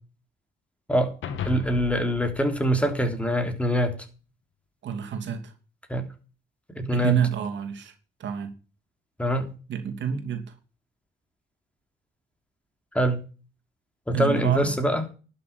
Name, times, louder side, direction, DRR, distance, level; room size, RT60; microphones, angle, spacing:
sound 1, 1.2-3.7, left 6 dB, 80° left, 2.1 m, -36 dB
voice 1, 1.4-3.9 5.9-6.1 6.7-7.1 9.2-9.5 12.9-13.2 14.1-15.0, equal, 5° left, 6 dB, 3.2 m, -24 dB
voice 2, 4.8-5.5 6.9-7.9 8.2-8.5 9.7-10.5 14.1-14.8, right 7 dB, 65° right, 6 dB, 3.0 m, -28 dB
11.5 x 6.9 x 7.0 m, 0.35 s
cardioid pair, 90°, 20 cm